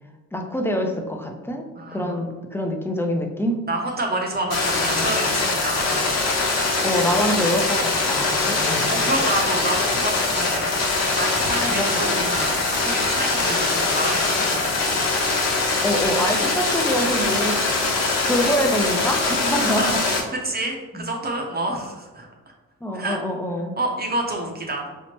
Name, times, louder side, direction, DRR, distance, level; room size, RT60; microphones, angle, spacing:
voice 1, 0.3-1.6 1.9-3.6 6.8-9.1 11.7-12.3 15.8-17.6 18.3-20.0 20.9-21.0 22.8-23.8, equal, 10° left, 2 dB, 0.4 m, -25 dB
voice 2, 1.7-2.1 3.7-6.1 8.3-10.7 11.1-14.7 19.6-22.3 22.9-23.2 23.8-24.9, right 2 dB, 30° right, 0 dB, 0.7 m, -28 dB
sound 1, 4.5-20.2, left 3 dB, 60° left, 0.9 m, -22 dB
4.4 x 2.0 x 2.9 m, 1.2 s
cardioid pair, 90°, 30 cm